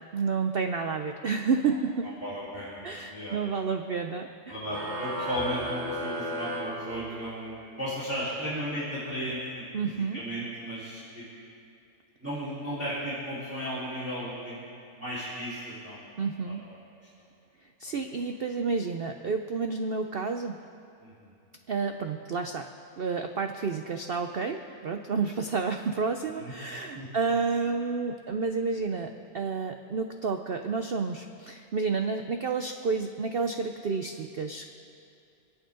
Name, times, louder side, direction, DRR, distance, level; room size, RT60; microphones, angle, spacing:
voice 1, 0.1-2.1 2.8-4.6 9.7-10.2 16.2-16.6 17.8-20.6 21.7-22.7 23.0-34.7, right 4 dB, 75° right, 6 dB, 0.5 m, -30 dB
voice 2, 2.2-3.4 4.5-9.6 10.1-11.3 12.2-14.6 15.0-16.1 16.7-16.8 17.8-18.0 21.0-21.3 26.4-26.5 26.9-27.1, equal, 10° right, -12 dB, 3.9 m, -35 dB
sound 1, 4.7-7.6, equal, 40° right, 2.0 m, -34 dB
26.5 x 9.0 x 3.8 m, 2.6 s
omnidirectional pair, 1.8 m